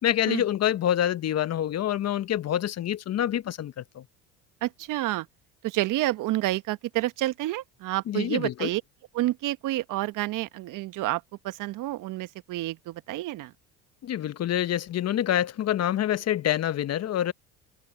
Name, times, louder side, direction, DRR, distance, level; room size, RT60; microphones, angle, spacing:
voice 1, 0.0-4.0 8.1-8.7 14.0-17.3, left 11 dB, 45° left, 1.3 m, -26 dB
voice 2, 4.6-5.3 5.6-8.8 9.1-13.5, right 16 dB, 60° right, 1.4 m, -29 dB
hypercardioid pair, 70°, 36 cm